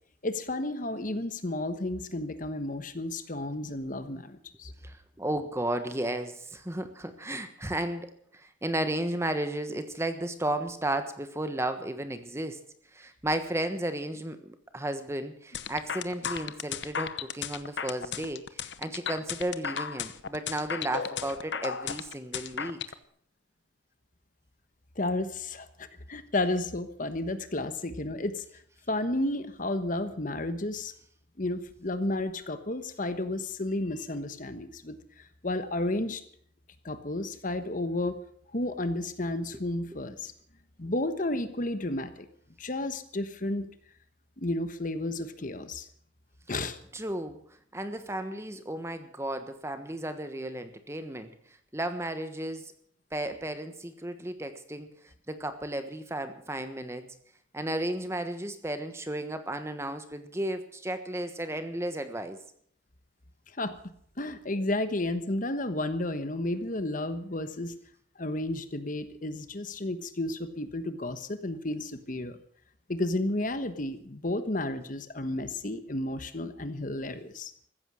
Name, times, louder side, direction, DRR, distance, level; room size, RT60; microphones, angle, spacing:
voice 1, 0.2-4.7 25.0-28.4 28.9-30.9 31.4-36.2 36.8-38.2 38.5-40.3 40.8-42.3 42.6-43.7 44.4-45.9 46.5-46.8 63.6-63.7 64.2-67.7 68.2-72.4 72.9-77.5, left 1 dB, 45° left, 11 dB, 1.2 m, -32 dB
voice 2, 4.8-12.6 12.9-22.8 46.9-47.4 47.7-51.3 51.7-52.7 53.1-54.9 55.3-57.1 57.5-62.4, right 1 dB, 15° right, 9 dB, 1.3 m, -34 dB
sound 1, 15.5-22.9, left 7 dB, 65° left, 0.9 m, -34 dB
15.0 x 14.0 x 6.4 m, 0.62 s
head